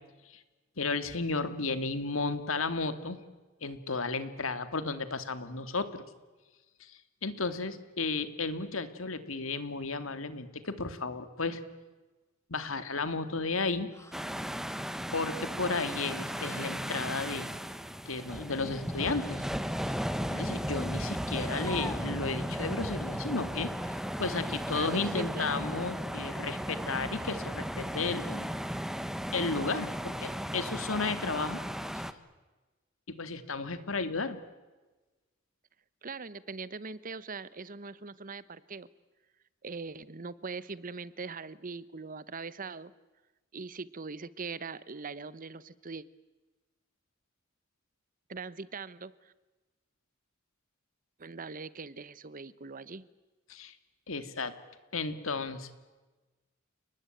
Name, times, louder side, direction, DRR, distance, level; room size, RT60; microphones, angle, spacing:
voice 1, 0.8-3.2 3.6-6.0 6.8-11.6 12.5-13.9 15.1-17.5 18.1-19.5 20.3-23.7 24.2-28.5 29.3-31.6 33.1-34.4 53.5-53.8 54.1-54.5 54.9-55.7, left 3 dB, 80° left, 11 dB, 2.2 m, -33 dB
sound 1, 13.9-14.3 16.3-16.8 18.9-19.4 21.2-22.2 23.8-24.0 26.1-26.6 28.0-28.5, left 2 dB, 15° left, 1.4 m, -47 dB
sound 2, 14.1-32.1, equal, ahead, 1.1 m, -35 dB
voice 2, 24.5-25.7 36.0-38.9 39.6-42.9 43.5-46.0 48.3-49.3 51.2-53.1, right 4 dB, 40° right, 18 dB, 0.9 m, -41 dB
30.0 x 20.0 x 9.1 m, 1.2 s
head